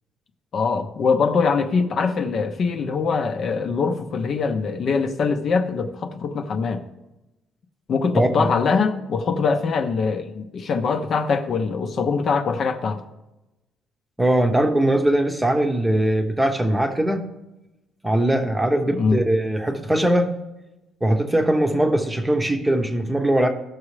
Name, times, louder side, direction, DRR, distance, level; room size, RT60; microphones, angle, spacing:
voice 1, 0.5-6.8 7.9-13.0 18.9-19.2, left 5 dB, 45° left, 6 dB, 0.8 m, -23 dB
voice 2, 8.1-8.5 14.2-17.3 18.0-20.3 21.0-23.5, right 1 dB, 10° right, 4 dB, 0.9 m, -20 dB
15.5 x 6.1 x 3.3 m, 0.96 s
cardioid pair, 135°, 0 cm